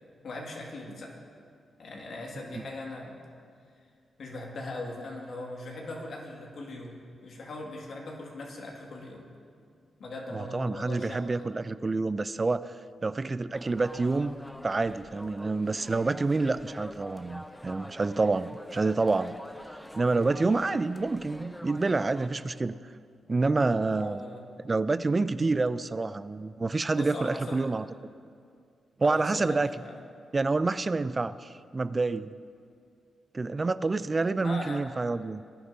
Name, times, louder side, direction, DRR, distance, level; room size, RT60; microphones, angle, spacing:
voice 1, 0.2-1.2 1.8-3.2 4.2-9.3 10.0-11.5 23.9-24.4 26.9-27.7 29.0-30.0 34.4-34.9, left 2 dB, 65° left, -1 dB, 2.1 m, -40 dB
voice 2, 10.3-12.7 13.0-14.4 14.6-19.4 20.0-22.8 23.3-24.2 24.6-27.8 29.0-29.7 30.3-32.3 33.3-35.4, right 3 dB, 35° right, 15 dB, 0.4 m, -28 dB
sound 1, 13.5-22.3, equal, 5° left, 0.7 m, -46 dB
19.0 x 11.0 x 2.7 m, 2.3 s
hypercardioid pair, 40°, 0 cm